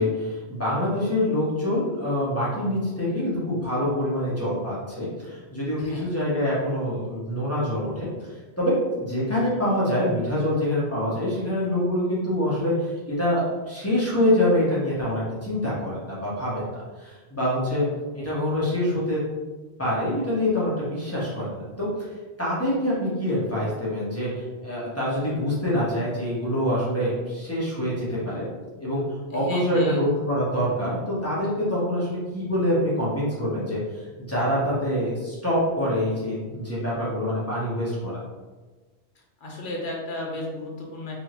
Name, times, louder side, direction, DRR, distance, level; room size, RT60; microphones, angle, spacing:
voice 1, 0.0-8.1 8.6-17.9 18.1-19.2 19.8-21.9 22.4-28.4 28.8-29.0 29.3-38.2, left 1 dB, 15° left, -8 dB, 1.2 m, -25 dB
voice 2, 5.8-6.1 29.3-30.0 39.4-41.1, left 1 dB, 50° left, -2 dB, 1.0 m, -34 dB
3.6 x 3.2 x 3.0 m, 1.3 s
omnidirectional pair, 1.1 m